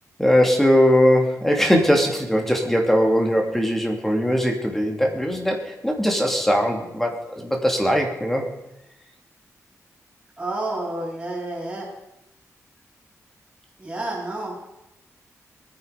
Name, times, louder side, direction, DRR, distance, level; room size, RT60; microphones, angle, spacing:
voice 1, 0.2-8.5, equal, 5° left, 1 dB, 2.6 m, -20 dB
voice 2, 10.4-11.9 13.8-14.6, right 2 dB, 15° right, -7 dB, 7.1 m, -29 dB
21.5 x 10.0 x 5.2 m, 0.90 s
wide cardioid pair, 135°, 6 cm